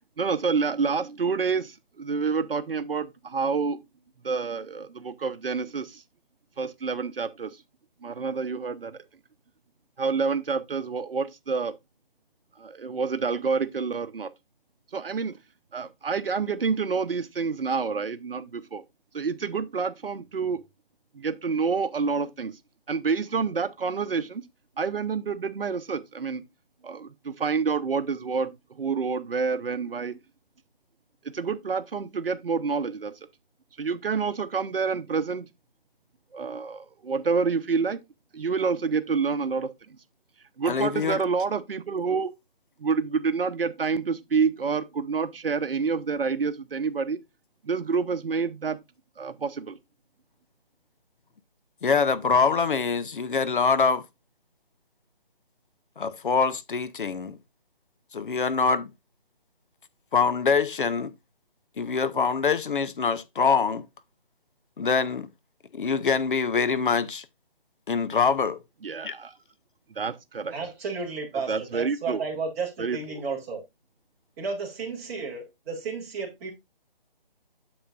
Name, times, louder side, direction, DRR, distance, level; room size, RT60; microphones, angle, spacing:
voice 1, 0.2-3.8 4.2-6.0 6.6-7.6 8.0-9.0 10.0-11.7 12.6-14.3 14.9-15.4 15.7-18.8 19.1-20.6 21.2-22.5 22.9-24.4 24.8-26.4 26.8-28.5 28.8-30.2 31.2-33.1 33.8-35.5 36.3-38.0 38.3-39.7 40.6-42.3 42.8-47.2 47.6-48.8 49.2-49.8 68.8-69.3 69.9-70.5 71.5-72.2 72.8-73.2, right 5 dB, 70° right, 0.8 m, -28 dB
voice 2, 40.7-41.2 51.8-54.1 56.0-57.4 58.1-58.9 60.1-61.1 61.8-63.9 64.8-65.3 65.7-67.3 67.9-68.6 69.0-69.1, left 5 dB, 60° left, 0.6 m, -24 dB
voice 3, 70.5-73.6 74.4-76.5, right 4 dB, 15° right, 2.1 m, -33 dB
8.7 x 7.1 x 2.5 m
figure-of-eight pair, 165°, 29 cm